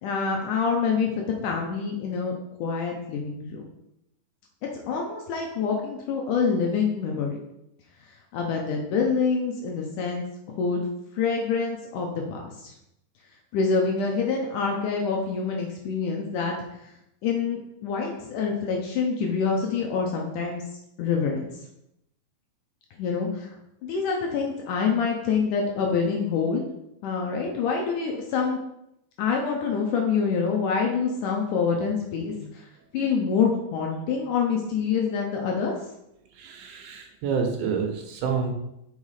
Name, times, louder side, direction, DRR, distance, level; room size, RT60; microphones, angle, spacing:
voice 1, 0.0-2.3 2.6-3.6 4.9-7.4 8.3-10.8 11.2-12.7 13.5-16.5 17.2-20.6 21.0-21.5 23.0-23.5 23.8-26.6 27.0-28.6 29.2-32.6 32.9-35.7, left 5 dB, 75° left, 1 dB, 1.9 m, -26 dB
voice 2, 36.4-38.5, right 5 dB, 80° right, 3 dB, 2.8 m, -28 dB
5.6 x 4.9 x 4.8 m, 0.83 s
omnidirectional pair, 4.4 m